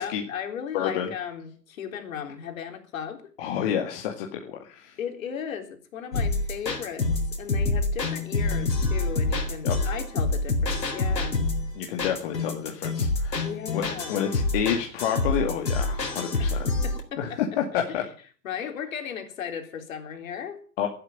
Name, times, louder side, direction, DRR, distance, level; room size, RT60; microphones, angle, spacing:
voice 1, 0.0-3.2 5.0-7.1 7.4-11.4 13.4-14.2 16.4-17.4 17.9-18.1 18.4-20.6, left 8 dB, 55° left, 6 dB, 3.9 m, -36 dB
voice 2, 0.7-1.1 3.4-5.0 9.6-9.8 11.7-13.4 13.7-13.8 14.1-16.7 17.2-18.0 20.8-20.9, left 9 dB, 35° left, 2 dB, 2.2 m, -29 dB
sound 1, 6.1-17.0, left 3 dB, 80° left, 4.2 m, -27 dB
12.5 x 11.5 x 9.1 m, 0.42 s
hypercardioid pair, 140°, 49 cm